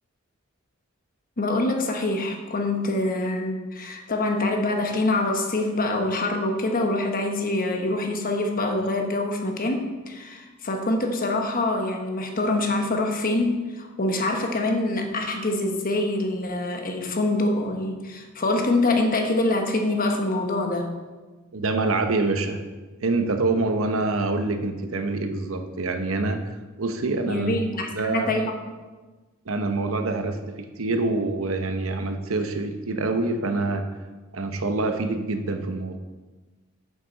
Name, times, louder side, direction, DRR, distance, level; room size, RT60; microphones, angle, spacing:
voice 1, 1.4-20.9 27.2-28.5, left 2 dB, 45° left, 4 dB, 1.0 m, -25 dB
voice 2, 21.5-22.6 23.0-26.4 26.8-27.5 27.9-28.3 29.5-33.9 34.3-36.0, right 3 dB, 80° right, 6 dB, 0.8 m, -26 dB
8.6 x 7.5 x 4.0 m, 1.3 s
head